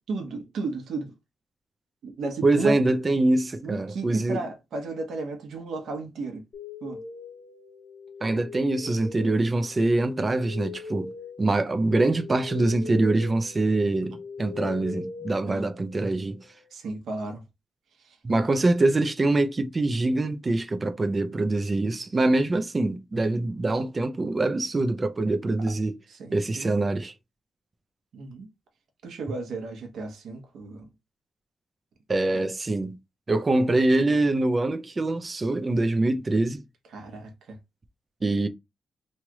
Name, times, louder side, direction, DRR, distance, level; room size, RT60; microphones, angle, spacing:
voice 1, 0.1-1.1 2.0-2.8 3.6-6.4 6.8-7.0 15.4-15.7 16.7-17.4 18.0-18.5 26.1-26.7 28.1-28.5 29.0-30.9 32.3-32.5 36.9-37.6, right 3 dB, 85° right, 1.0 m, -34 dB
voice 2, 2.4-4.4 8.2-11.1 11.4-16.4 18.2-26.0 26.3-27.1 32.1-33.0 33.3-36.6 38.2-38.5, right 2 dB, 25° right, 0.5 m, -24 dB
sound 1, 6.5-16.2, left 5 dB, 60° left, 0.6 m, -41 dB
3.1 x 2.4 x 2.9 m
wide cardioid pair, 125°, 0 cm